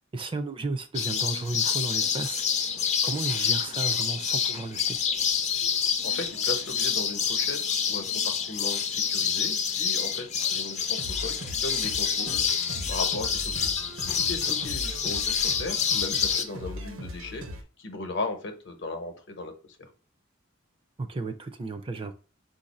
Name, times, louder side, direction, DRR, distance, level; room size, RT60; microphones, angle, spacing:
voice 1, 0.1-2.4 3.0-5.0 21.0-22.1, right 3 dB, 25° right, 0.4 m, -33 dB
sound 1, 0.9-16.4, left 7 dB, 35° left, 0.5 m, -27 dB
voice 2, 6.0-12.5 12.9-13.7 14.1-17.4 17.8-19.5 19.8-19.9, left 2 dB, 65° left, 0.8 m, -37 dB
sound 2, 10.8-17.6, equal, 85° right, 0.8 m, -40 dB
4.4 x 2.6 x 4.1 m
head